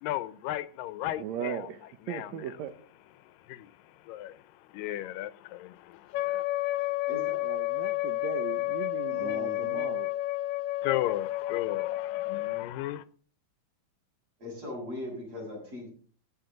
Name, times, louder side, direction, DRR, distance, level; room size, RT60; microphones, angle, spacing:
voice 1, 0.0-1.7 2.1-2.4 3.5-3.7 4.1-4.4 4.7-6.4 10.8-13.0, left 14 dB, 90° left, 2.4 m, -35 dB
voice 2, 1.2-2.7 7.4-10.1, right 9 dB, 70° right, 1.8 m, -38 dB
Wind instrument woodwind instrument, 6.1-12.7, left 17 dB, 75° left, 1.9 m, -31 dB
voice 3, 6.8-7.4 9.1-9.9 14.4-15.9, left 2 dB, 45° right, 7.1 m, -40 dB
15.5 x 9.5 x 3.9 m
omnidirectional pair, 3.9 m